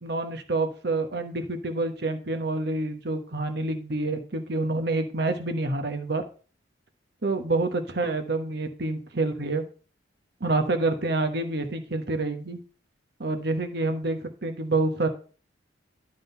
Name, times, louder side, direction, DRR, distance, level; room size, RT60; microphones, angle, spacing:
voice 1, 0.0-6.2 7.2-9.6 10.4-12.6 13.2-15.1, right 2 dB, 55° right, 6 dB, 1.1 m, -27 dB
11.0 x 3.8 x 5.5 m, 0.39 s
head